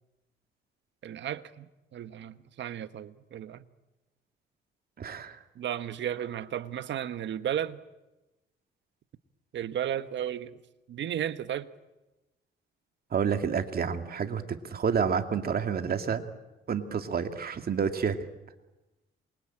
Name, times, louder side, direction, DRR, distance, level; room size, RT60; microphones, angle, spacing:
voice 1, 1.0-3.6 5.5-7.8 9.5-10.6 10.9-11.7, right 10 dB, 65° right, 12 dB, 1.3 m, -34 dB
voice 2, 5.0-5.4 13.1-16.2 16.7-18.2, right 6 dB, 50° right, 7 dB, 2.4 m, -29 dB
27.5 x 23.5 x 8.9 m, 1.0 s
cardioid pair, 90°, 20 cm